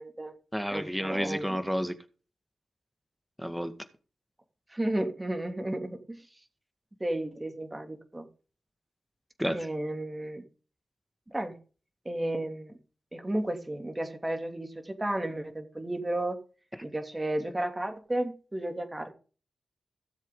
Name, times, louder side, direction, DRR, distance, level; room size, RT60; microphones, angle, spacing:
voice 1, 0.0-0.3 0.7-1.6 4.7-6.0 7.0-8.3 9.5-10.4 11.3-11.6 12.0-12.7 13.1-16.4 16.8-19.1, right 1 dB, 20° right, 5 dB, 3.0 m, -33 dB
voice 2, 0.5-1.9 3.4-3.7 9.4-9.7, equal, ahead, 9 dB, 1.8 m, -30 dB
17.0 x 7.3 x 3.9 m, 0.37 s
cardioid pair, 65°, 0 cm